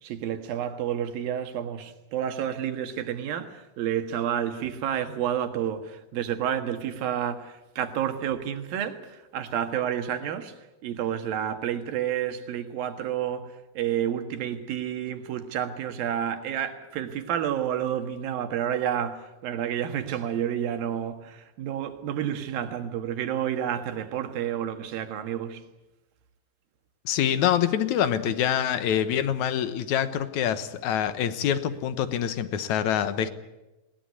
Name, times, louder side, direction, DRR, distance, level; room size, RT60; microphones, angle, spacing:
voice 1, 0.0-25.6, right 9 dB, 80° right, 3.4 m, -30 dB
voice 2, 27.1-33.3, left 9 dB, 65° left, 2.2 m, -25 dB
21.5 x 20.0 x 9.6 m
omnidirectional pair, 4.1 m